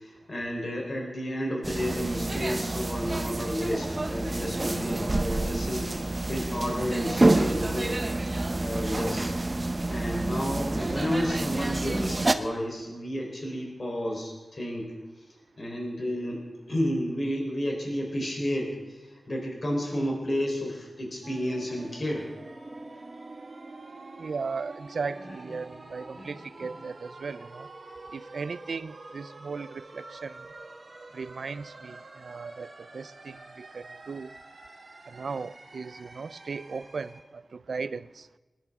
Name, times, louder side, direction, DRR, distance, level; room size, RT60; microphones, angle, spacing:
voice 1, 0.0-5.9 6.3-9.3 9.9-14.9 15.6-22.3 25.2-25.3 26.1-26.3 26.7-26.8, equal, 50° left, 0 dB, 3.7 m, -32 dB
sound 1, 1.6-12.3, right 2 dB, 35° right, 0.7 m, -28 dB
sound 2, 21.2-37.2, right 2 dB, 65° right, 2.3 m, -46 dB
voice 2, 24.2-27.7 28.1-30.4 31.1-34.3 35.1-38.3, right 4 dB, 85° right, 16 dB, 0.4 m, -37 dB
20.5 x 10.5 x 3.6 m, 1.2 s
wide cardioid pair, 75°, 0 cm